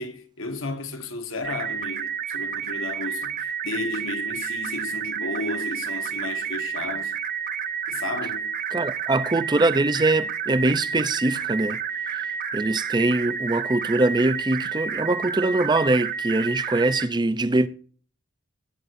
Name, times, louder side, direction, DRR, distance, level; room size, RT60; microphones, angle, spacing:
voice 1, 0.0-7.1 7.9-8.5, left 3 dB, 80° left, 1.7 m, -33 dB
sound 1, 1.4-17.1, right 7 dB, 45° right, 0.9 m, -30 dB
voice 2, 8.7-17.7, right 2 dB, 20° right, 0.5 m, -23 dB
20.5 x 9.5 x 2.6 m
head